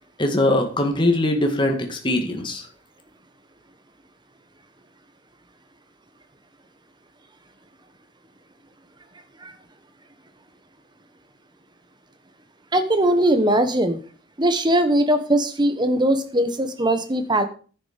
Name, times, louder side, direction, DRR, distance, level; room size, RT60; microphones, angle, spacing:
voice 1, 0.2-2.6, left 1 dB, 25° left, 3 dB, 1.8 m, -21 dB
voice 2, 12.7-14.0 14.4-17.4, right 1 dB, 25° right, 9 dB, 1.2 m, -20 dB
10.0 x 6.5 x 6.7 m, 0.40 s
head